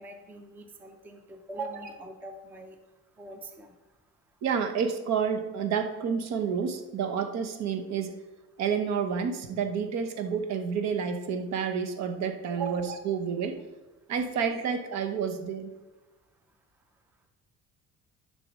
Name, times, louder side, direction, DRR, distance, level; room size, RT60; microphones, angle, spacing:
voice 1, 0.0-2.8 3.2-3.7 12.6-12.8, right 3 dB, 5° right, 4 dB, 0.5 m, -41 dB
voice 2, 4.4-8.1 8.6-13.6 14.1-15.7, right 6 dB, 60° right, 6 dB, 1.0 m, -29 dB
10.5 x 4.2 x 6.1 m, 1.1 s
cardioid pair, 175°, 31 cm